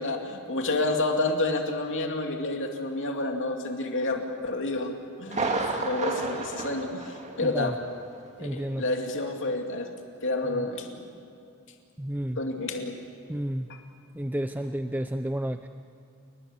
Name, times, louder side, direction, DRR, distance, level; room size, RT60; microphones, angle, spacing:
voice 1, 0.0-7.8 8.4-9.9 10.2-11.1 12.4-13.0 13.7-13.8, left 2 dB, 60° left, 3 dB, 2.5 m, -29 dB
Thunder, 5.3-7.9 8.1-8.2 8.8-8.9, right 3 dB, 30° right, 2.3 m, -31 dB
voice 2, 7.4-7.7 8.4-8.8 12.0-12.4 13.3-13.7 14.1-15.7, right 1 dB, 10° right, 8 dB, 0.6 m, -31 dB
29.5 x 20.5 x 7.3 m, 2.5 s
head